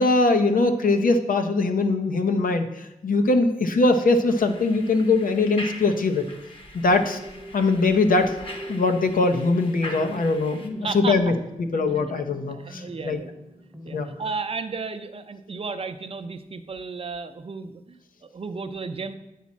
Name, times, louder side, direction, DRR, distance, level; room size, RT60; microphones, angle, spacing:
voice 1, 0.0-6.3 6.7-7.2 7.5-8.4 8.7-11.3 11.7-13.2 13.9-14.1, left 3 dB, 80° left, 7 dB, 0.8 m, -21 dB
sound 1, 4.2-10.7, left 1 dB, 40° left, 1.0 m, -42 dB
sound 2, 7.0-14.4, right 1 dB, 5° left, 0.9 m, -41 dB
voice 2, 10.8-11.2 11.9-12.1 12.5-13.3 13.8-19.1, right 4 dB, 40° right, 9 dB, 0.5 m, -34 dB
9.2 x 4.2 x 7.2 m, 0.93 s
wide cardioid pair, 180°, 14 cm